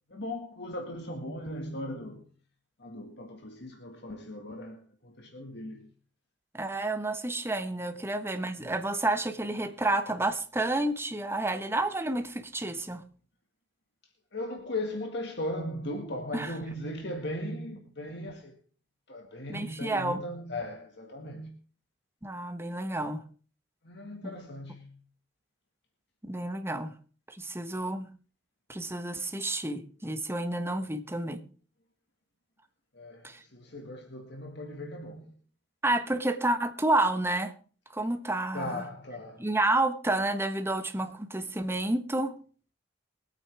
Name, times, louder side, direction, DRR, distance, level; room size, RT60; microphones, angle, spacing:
voice 1, 0.1-2.3 2.8-5.9 14.3-18.6 19.1-21.6 23.8-25.0 32.9-35.3 38.5-39.5, left 1 dB, 65° left, 2.0 m, -38 dB
voice 2, 6.5-13.0 16.3-16.5 19.5-20.2 22.2-23.2 24.2-24.4 26.3-26.9 27.3-28.1 28.7-31.4 33.2-33.4 35.8-37.5 37.9-38.8 39.4-42.3, right 2 dB, 15° right, 1.2 m, -30 dB
23.0 x 8.9 x 3.5 m
head